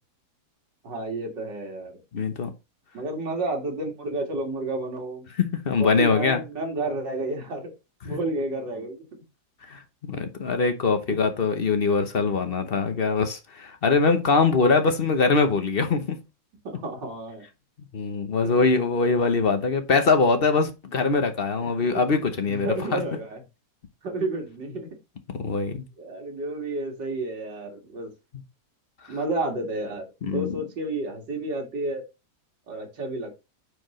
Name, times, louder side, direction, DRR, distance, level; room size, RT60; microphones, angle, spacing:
voice 1, 0.8-1.9 2.9-5.3 5.8-7.7 8.0-9.1 11.1-11.2 16.6-17.5 18.4-18.7 21.6-22.1 22.5-23.4 24.0-24.9 26.0-28.1 29.1-30.1 30.3-32.0 32.7-33.4, right 2 dB, 80° right, 2.7 m, -31 dB
voice 2, 2.1-2.5 5.4-6.4 9.7-16.2 17.9-23.0 25.3-25.8 30.2-30.5, left 4 dB, 45° left, 0.8 m, -23 dB
9.2 x 4.8 x 3.1 m
omnidirectional pair, 1.9 m